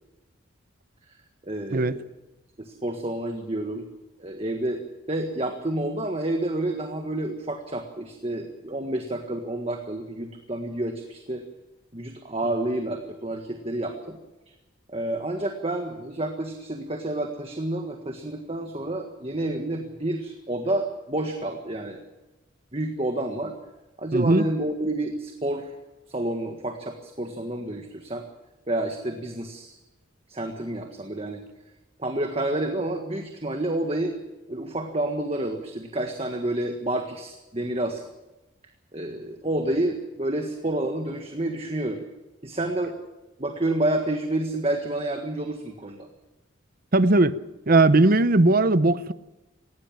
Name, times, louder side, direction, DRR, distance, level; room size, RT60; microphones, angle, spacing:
voice 1, 1.4-2.0 2.6-3.9 4.2-4.8 5.1-11.4 11.9-14.2 14.9-22.0 22.7-23.6 24.0-25.7 26.1-28.3 28.7-29.8 30.3-31.4 32.0-34.2 34.5-38.0 38.9-42.0 42.4-42.9 43.4-46.1, right 1 dB, 30° right, 1.6 m, -29 dB
voice 2, 24.1-24.5 46.9-49.1, right 2 dB, 45° right, 0.8 m, -19 dB
19.0 x 16.5 x 9.0 m
head